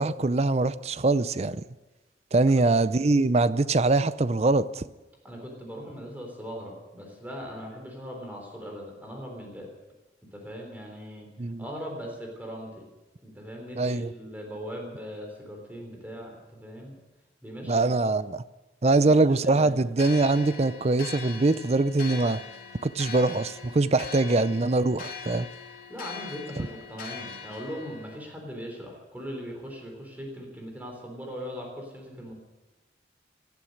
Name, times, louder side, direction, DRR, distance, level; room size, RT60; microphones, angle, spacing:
voice 1, 0.0-1.6 2.3-4.9 11.4-11.6 13.7-14.1 17.7-18.4 18.8-22.4 22.8-25.5 26.6-26.7, right 2 dB, 35° right, 15 dB, 0.5 m, -23 dB
voice 2, 5.2-9.7 10.3-11.3 11.6-12.9 13.2-16.9 17.4-17.9 18.9-19.8 25.9-32.3, equal, 10° right, 1 dB, 3.5 m, -40 dB
sound 1, 20.0-28.2, left 6 dB, 50° left, 3.2 m, -41 dB
19.0 x 12.0 x 6.5 m, 1.1 s
head